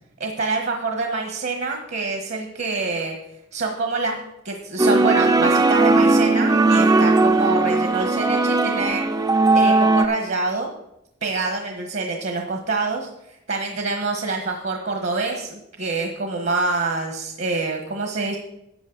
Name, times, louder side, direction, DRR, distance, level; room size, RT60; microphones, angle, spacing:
voice 1, 0.2-3.2 3.5-9.0 9.5-10.7 11.2-13.1 13.5-18.4, right 3 dB, 60° right, 3 dB, 1.3 m, -26 dB
sound 1, 4.8-10.1, right 2 dB, 20° right, 0.4 m, -17 dB
11.5 x 8.5 x 3.9 m, 0.82 s
head